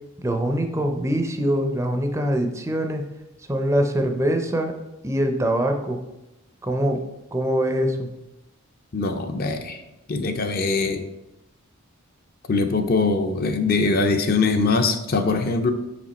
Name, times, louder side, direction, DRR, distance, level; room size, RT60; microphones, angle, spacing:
voice 1, 0.2-3.0 3.4-4.7 5.0-6.0 6.6-7.0 7.3-8.1, equal, 15° right, 5 dB, 0.5 m, -23 dB
voice 2, 8.9-9.8 10.1-11.0 12.5-15.7, left 3 dB, 45° left, 7 dB, 0.5 m, -22 dB
5.7 x 5.1 x 4.1 m, 0.96 s
head